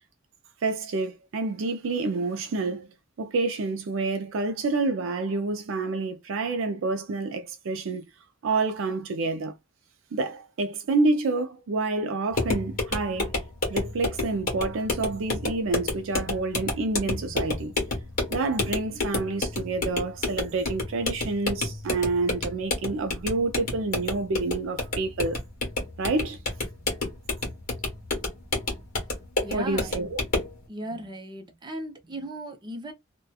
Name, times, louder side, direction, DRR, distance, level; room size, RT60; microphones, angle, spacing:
voice 1, 0.6-2.9 3.2-8.0 8.4-9.5 10.1-13.3 13.7-17.7 18.3-25.4 26.0-26.4 29.5-30.2, right 3 dB, 60° right, 0.4 m, -28 dB
sound 1, 12.3-30.6, left 2 dB, 40° left, 1.1 m, -30 dB
voice 2, 29.4-29.9 30.7-32.9, right 1 dB, 20° right, 0.6 m, -36 dB
2.6 x 2.2 x 2.3 m
head